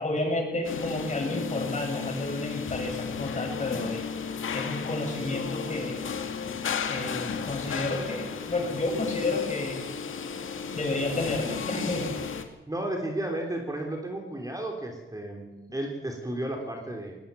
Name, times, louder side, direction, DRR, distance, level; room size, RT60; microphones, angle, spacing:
voice 1, 0.0-4.1 4.5-6.0 6.9-9.9 10.7-12.1, left 2 dB, 35° left, 1 dB, 7.5 m, -31 dB
sound 1, 0.6-12.4, left 6 dB, 70° left, 1.9 m, -34 dB
voice 2, 12.7-17.1, right 1 dB, 15° right, 2 dB, 3.8 m, -33 dB
19.5 x 19.0 x 7.1 m, 1.1 s
cardioid pair, 80°, 21 cm